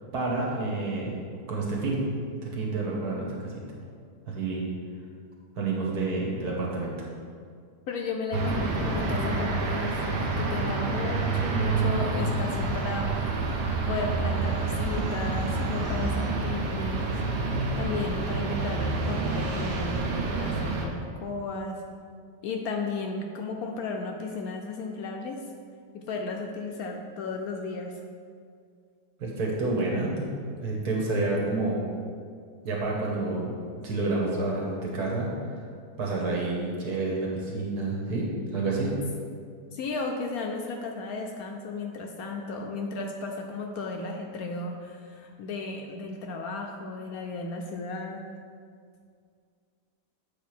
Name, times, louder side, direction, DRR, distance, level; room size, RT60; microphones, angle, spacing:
voice 1, 0.1-1.2 1.5-2.1 2.4-3.6 4.3-4.6 5.6-7.1 29.2-30.3 30.6-31.8 32.6-33.6 33.8-35.6 36.0-38.9, right 2 dB, 65° right, -3 dB, 1.7 m, -29 dB
voice 2, 7.9-13.2 13.9-17.2 17.8-21.8 22.4-25.4 25.9-28.0 39.7-48.3, left 3 dB, 70° left, 2 dB, 0.9 m, -34 dB
sound 1, 8.3-20.9, right 3 dB, 80° right, 1.4 m, -28 dB
7.6 x 3.4 x 6.0 m, 2.2 s
omnidirectional pair, 1.8 m